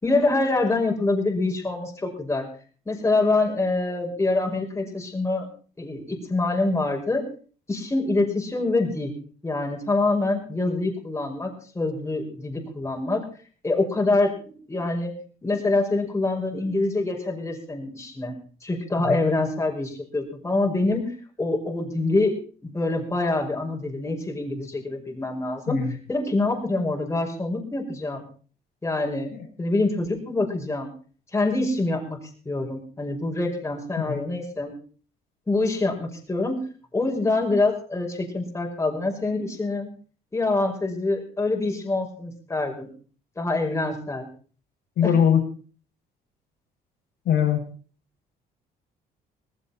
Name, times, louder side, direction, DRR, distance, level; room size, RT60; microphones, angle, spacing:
voice 1, 0.0-2.5 2.9-5.5 5.8-7.2 7.7-9.1 9.4-13.2 13.6-15.1 15.4-18.3 18.6-22.4 22.6-25.8 26.1-28.2 28.8-29.3 29.6-30.9 31.3-32.2 32.5-34.7 35.5-36.6 36.9-39.9 40.3-42.9 43.4-44.3 45.0-45.1, left 2 dB, 15° left, 1 dB, 5.7 m, -25 dB
voice 2, 45.0-45.4 47.2-47.6, left 8 dB, 70° left, 2 dB, 5.2 m, -21 dB
18.5 x 16.0 x 4.2 m, 0.41 s
cardioid pair, 110°, 17 cm